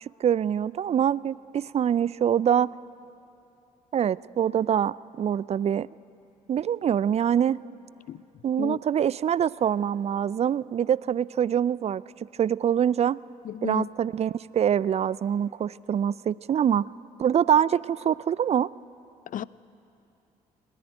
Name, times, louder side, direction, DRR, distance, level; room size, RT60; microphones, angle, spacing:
voice 1, 0.0-2.7 3.9-5.9 6.5-7.6 8.4-12.0 12.4-13.2 13.6-16.9 17.2-18.7, right 9 dB, 35° right, 0.4 m, -24 dB
voice 2, 13.5-13.9 19.3-19.4, left 10 dB, 45° left, 0.5 m, -32 dB
20.0 x 17.5 x 9.2 m
hypercardioid pair, 45°, 18 cm